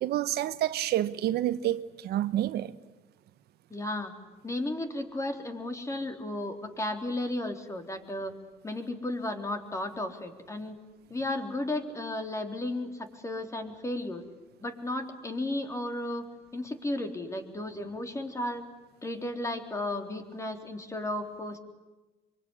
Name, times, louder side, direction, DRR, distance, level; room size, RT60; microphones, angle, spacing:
voice 1, 0.0-2.7, right 13 dB, 70° right, 1.0 m, -28 dB
voice 2, 3.7-4.1 4.4-8.3 8.6-10.8 11.1-14.2 14.6-16.2 16.5-18.6 19.0-21.6, left 1 dB, 15° left, 3.7 m, -34 dB
24.5 x 24.5 x 9.9 m
cardioid pair, 110°, 17 cm